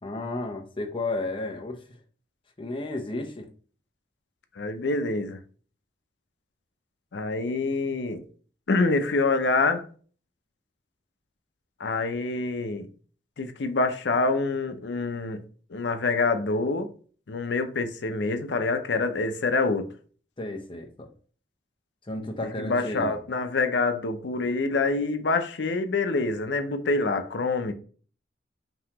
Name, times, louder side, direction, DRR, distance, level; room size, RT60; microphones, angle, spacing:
voice 1, 0.0-1.8 2.6-3.5 20.4-21.1 22.1-23.2, left 2 dB, 30° left, 0.8 m, -32 dB
voice 2, 4.6-5.4 7.1-8.2 8.7-9.8 11.8-12.9 13.4-15.4 15.7-16.9 17.3-19.9 22.6-27.7, left 3 dB, 85° left, 0.6 m, -26 dB
5.4 x 2.9 x 2.9 m
head